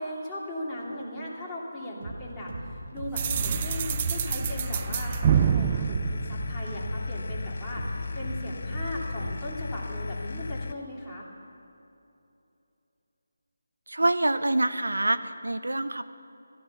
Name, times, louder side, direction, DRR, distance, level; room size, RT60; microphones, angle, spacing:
voice 1, 0.0-11.3, left 1 dB, 10° left, -8 dB, 2.8 m, -38 dB
sound 1, 2.0-9.7, right 1 dB, 50° right, 3.0 m, -39 dB
sound 2, 3.2-10.7, left 3 dB, 65° left, 0.5 m, -35 dB
sound 3, 3.2-7.0, right 9 dB, 25° right, 0.3 m, -27 dB
voice 2, 13.9-16.0, right 2 dB, 90° right, 12 dB, 0.7 m, -26 dB
14.5 x 13.0 x 7.0 m, 2.8 s
figure-of-eight pair, 160°, 0 cm